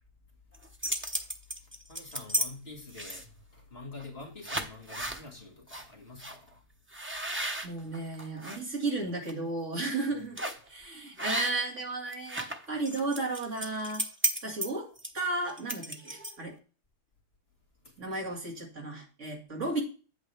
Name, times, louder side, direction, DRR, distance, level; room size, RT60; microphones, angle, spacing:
sound 1, 0.5-2.5 2.9-3.4 4.0-4.1 4.4-5.2 5.7-5.8 6.2-6.4 6.9-8.6 9.0-9.3 10.4-10.7 11.2-11.8 12.0-16.5, right 1 dB, 15° right, 0.4 m, -34 dB
voice 1, 1.9-3.3 3.5-6.6 17.8-17.9 18.2-18.3, left 3 dB, 40° left, 2.0 m, -46 dB
voice 2, 7.6-10.4 10.7-14.0 14.4-14.9 15.1-16.5 18.0-19.8, right 2 dB, 45° right, 2.5 m, -34 dB
8.9 x 8.3 x 3.4 m
omnidirectional pair, 1.7 m